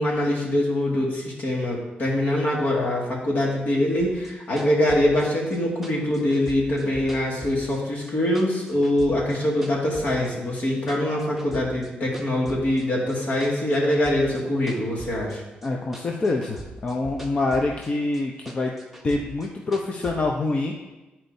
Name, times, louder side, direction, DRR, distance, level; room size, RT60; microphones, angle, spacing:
voice 1, 0.0-15.4, left 1 dB, 65° left, -3 dB, 2.0 m, -23 dB
sound 1, 4.0-8.1 8.4-10.3 10.6-11.9 12.1-15.7 15.9-17.9 18.1-20.2, right 2 dB, 5° right, 0.9 m, -41 dB
voice 2, 15.6-18.7 19.0-20.7, left 2 dB, 35° left, 0 dB, 0.7 m, -25 dB
12.0 x 4.4 x 2.7 m, 1.1 s
cardioid pair, 110°, 3 cm